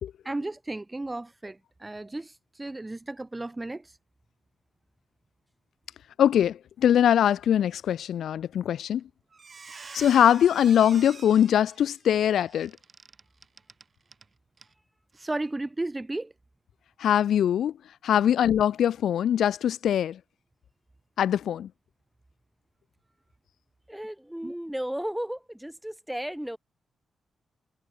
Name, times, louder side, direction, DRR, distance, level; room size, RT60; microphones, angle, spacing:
voice 1, 0.2-4.0 15.2-16.3 24.4-24.5, right 2 dB, 20° right, 2.0 m, -34 dB
voice 2, 6.2-9.0 9.9-12.7 17.0-17.7 18.0-20.2 21.2-21.7, left 10 dB, 85° left, 0.8 m, -22 dB
Squeak, 8.8-9.0 9.3-14.3 14.6-14.7 15.1-15.3, right 4 dB, 45° right, 2.7 m, -47 dB
voice 3, 23.9-26.6, equal, 5° right, 7.0 m, -34 dB
cardioid pair, 70°, 0 cm